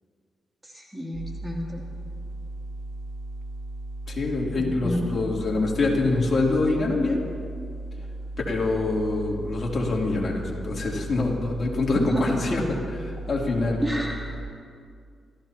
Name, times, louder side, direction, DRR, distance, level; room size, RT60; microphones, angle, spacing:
voice 1, 0.6-1.9 4.8-5.1 11.9-12.3 13.8-14.2, equal, 10° right, -2 dB, 2.9 m, -28 dB
sound 1, 1.1-14.4, right 2 dB, 65° right, 2.5 m, -36 dB
voice 2, 4.1-7.2 8.5-12.6 12.9-13.8, left 3 dB, 50° left, -2 dB, 3.2 m, -25 dB
26.5 x 15.0 x 3.0 m, 2.2 s
cardioid pair, 70°, 0 cm